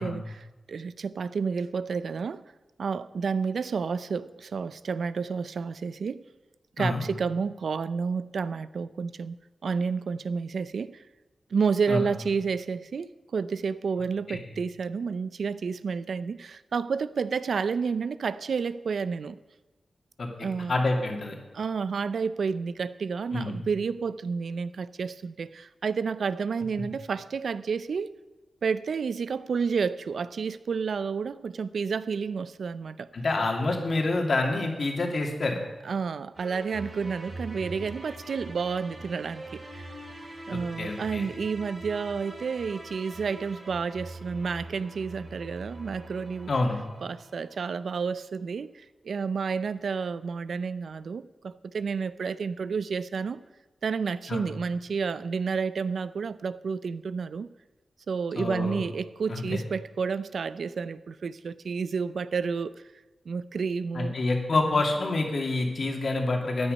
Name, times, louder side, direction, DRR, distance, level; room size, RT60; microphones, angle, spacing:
voice 1, 0.0-2.4 2.8-6.2 6.8-9.4 9.6-11.0 11.5-19.4 20.4-20.8 21.5-28.1 28.6-33.1 35.8-39.9 40.5-46.5 47.0-53.4 53.8-57.5 58.1-62.7 63.3-64.1 64.5-64.8, right 5 dB, 75° right, 16 dB, 0.5 m, -30 dB
voice 2, 20.2-21.3 23.3-23.6 33.1-35.6 40.5-41.3 46.5-46.8 54.3-54.4 58.3-58.8 59.3-59.6 63.9-66.7, left 2 dB, 60° left, 2 dB, 2.4 m, -27 dB
sound 1, 36.4-47.7, right 1 dB, 40° right, 4.6 m, -43 dB
14.5 x 9.9 x 5.3 m, 1.2 s
wide cardioid pair, 80°, 0 cm